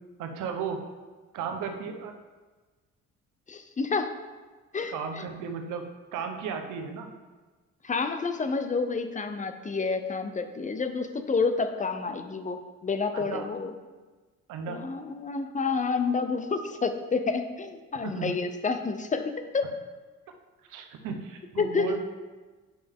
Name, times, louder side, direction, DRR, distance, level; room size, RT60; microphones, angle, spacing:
voice 1, 0.2-0.8 1.3-2.1 4.9-7.2 13.1-13.5 14.5-14.8 18.0-18.4 20.7-22.0, right 6 dB, 85° right, 5 dB, 0.9 m, -35 dB
voice 2, 3.5-4.1 4.7-5.2 7.8-13.7 14.7-19.7 21.6-21.9, left 4 dB, 25° left, 8 dB, 0.7 m, -29 dB
8.7 x 5.5 x 3.6 m, 1.3 s
cardioid pair, 90°, 30 cm